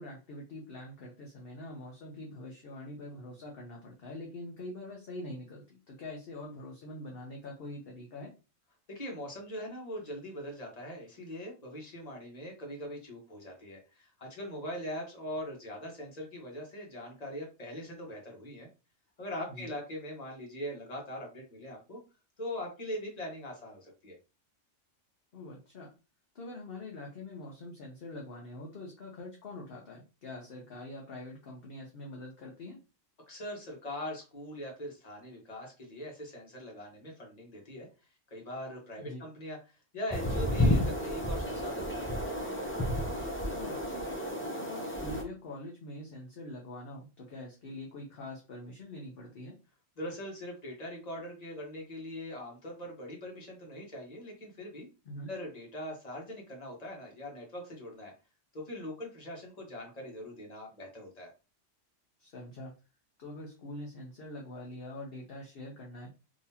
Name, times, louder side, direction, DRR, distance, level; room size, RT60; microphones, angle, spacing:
voice 1, 0.0-8.3 19.5-19.7 25.3-25.9 26.3-32.8 39.0-39.2 43.5-44.1 44.5-49.5 55.0-55.3 62.2-62.7 63.2-66.1, left 1 dB, 55° left, -1 dB, 0.9 m, -44 dB
voice 2, 8.9-18.7 19.2-22.0 22.4-24.2 33.3-37.9 38.3-39.6 39.9-42.5 50.0-54.9 55.3-58.1 58.5-61.3, left 1 dB, 35° left, 0 dB, 1.3 m, -41 dB
sound 1, 40.1-45.2, left 1 dB, 15° left, 0.5 m, -31 dB
3.6 x 2.9 x 2.8 m, 0.31 s
omnidirectional pair, 1.3 m